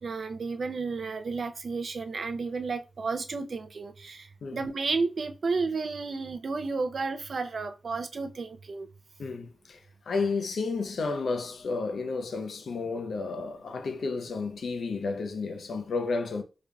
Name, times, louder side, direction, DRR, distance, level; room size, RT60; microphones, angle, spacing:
voice 1, 0.0-4.2 4.5-8.9, right 4 dB, 65° right, 0.4 m, -32 dB
voice 2, 9.2-9.8 10.1-16.4, left 4 dB, 90° left, 0.6 m, -32 dB
3.8 x 3.2 x 2.2 m
wide cardioid pair, 100°, 0 cm